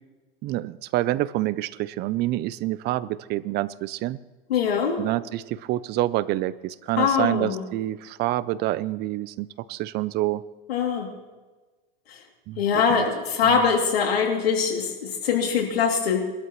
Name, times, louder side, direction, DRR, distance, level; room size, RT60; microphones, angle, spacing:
voice 1, 0.4-4.2 5.0-10.4 12.5-12.6 12.9-13.0 13.4-13.6, right 16 dB, 35° right, 18 dB, 0.5 m, -27 dB
voice 2, 4.5-5.0 7.0-7.6 10.7-11.1 12.1-12.2 12.6-16.2, left 6 dB, 85° left, 1 dB, 2.9 m, -23 dB
22.0 x 12.5 x 3.1 m, 1.3 s
hypercardioid pair, 120°, 30 cm